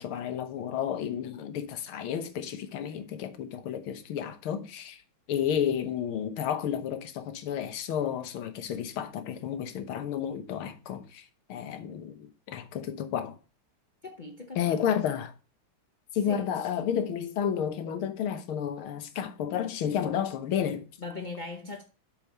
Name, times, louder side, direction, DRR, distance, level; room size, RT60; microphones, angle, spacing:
voice 1, 0.0-5.0 5.3-13.4 14.6-15.3 16.1-20.8, left 9 dB, 80° left, 1.8 m, -31 dB
voice 2, 14.0-15.0 16.3-16.5 21.0-21.8, left 3 dB, 60° left, 0.5 m, -40 dB
6.0 x 4.7 x 6.5 m
omnidirectional pair, 2.3 m